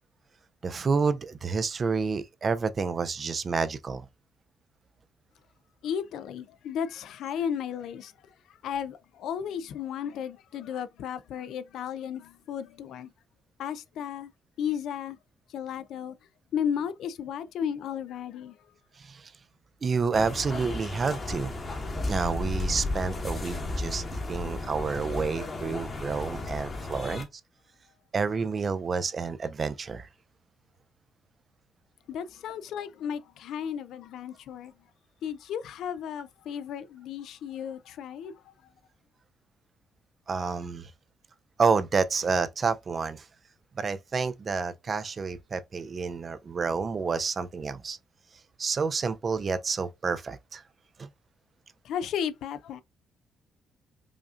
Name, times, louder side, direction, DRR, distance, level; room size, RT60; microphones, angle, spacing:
voice 1, 0.6-4.0 19.0-19.3 19.8-21.6 22.1-27.3 28.1-30.1 40.3-40.9 41.6-43.3 43.8-48.0 48.6-50.6 51.0-51.1, right 5 dB, 40° right, 0.4 m, -29 dB
voice 2, 5.8-8.1 8.6-13.1 13.6-14.3 14.6-15.2 15.5-16.1 16.5-18.6 32.1-34.7 35.2-38.3 51.8-52.8, left 8 dB, 80° left, 0.4 m, -34 dB
sound 1, 20.1-27.2, left 2 dB, 35° left, 1.1 m, -34 dB
5.0 x 2.4 x 2.4 m
cardioid pair, 90°, 0 cm